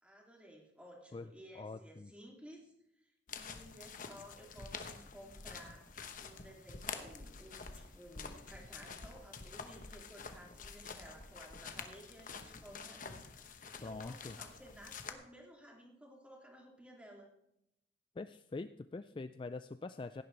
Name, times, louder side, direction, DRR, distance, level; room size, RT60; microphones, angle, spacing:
voice 1, 0.0-17.3, equal, 5° right, -1 dB, 2.7 m, -56 dB
voice 2, 1.6-2.1 13.8-14.4 18.2-20.2, left 3 dB, 30° left, 11 dB, 0.3 m, -44 dB
sound 1, 3.3-15.1, left 5 dB, 50° left, 1.1 m, -48 dB
16.5 x 10.5 x 3.3 m, 0.80 s
head